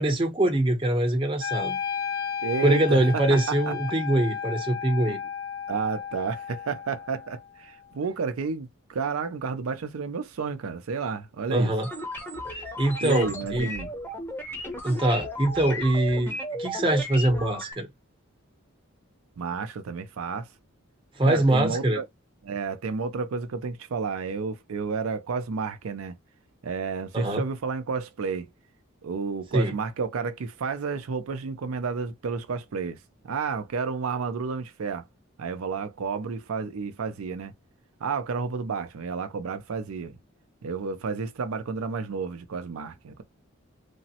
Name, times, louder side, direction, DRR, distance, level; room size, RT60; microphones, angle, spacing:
voice 1, 0.0-1.8 2.6-5.2 11.5-11.9 12.8-13.7 14.8-17.9 21.2-22.0 27.1-27.4 29.5-29.7, right 1 dB, 25° right, 0.8 m, -23 dB
Wind instrument woodwind instrument, 1.4-7.5, left 7 dB, 50° left, 0.5 m, -33 dB
voice 2, 2.4-3.4 3.7-3.8 5.1-5.2 5.7-11.7 13.0-13.9 19.4-20.5 21.3-22.0 22.4-26.2 26.6-28.5 29.0-33.0 33.2-35.1 35.4-37.5 38.0-40.2 40.6-43.2, right 5 dB, 85° right, 0.5 m, -31 dB
sound 1, 11.8-17.7, equal, 10° left, 0.7 m, -35 dB
3.3 x 2.0 x 2.8 m
head